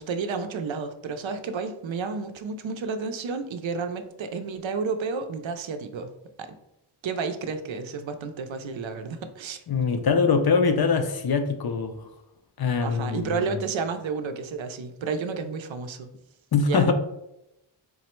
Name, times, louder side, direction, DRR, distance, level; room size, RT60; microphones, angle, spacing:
voice 1, 0.0-6.1 6.4-6.5 7.0-9.6 12.8-16.1 16.6-16.9, right 5 dB, 65° right, 0.5 m, -31 dB
voice 2, 9.7-12.0 12.6-13.5 16.5-16.9, left 5 dB, 50° left, 0.5 m, -23 dB
3.9 x 2.0 x 4.3 m
wide cardioid pair, 70°, 50 cm